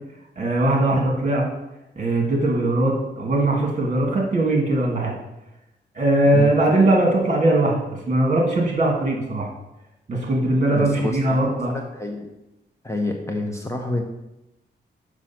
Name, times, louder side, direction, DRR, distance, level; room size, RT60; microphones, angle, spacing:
voice 1, 0.4-1.4 2.0-5.1 5.9-7.8 8.1-9.5 10.1-11.7, right 2 dB, 40° right, -1 dB, 1.9 m, -20 dB
voice 2, 10.7-12.3 12.8-14.0, left 2 dB, 15° left, 2 dB, 0.6 m, -28 dB
6.2 x 5.1 x 5.8 m, 0.94 s
wide cardioid pair, 165°, 19 cm